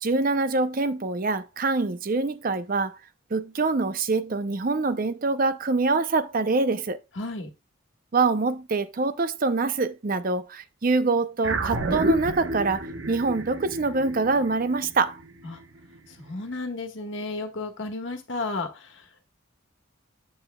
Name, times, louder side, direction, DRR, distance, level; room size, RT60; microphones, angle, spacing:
voice 1, 0.0-3.0 3.3-7.0 8.1-15.2, right 3 dB, 45° right, 0.6 m, -25 dB
voice 2, 7.1-7.5 15.4-15.6 16.1-19.3, left 3 dB, 65° left, 1.4 m, -33 dB
sound 1, 11.4-16.1, right 1 dB, 65° right, 0.9 m, -30 dB
9.2 x 7.7 x 2.3 m
head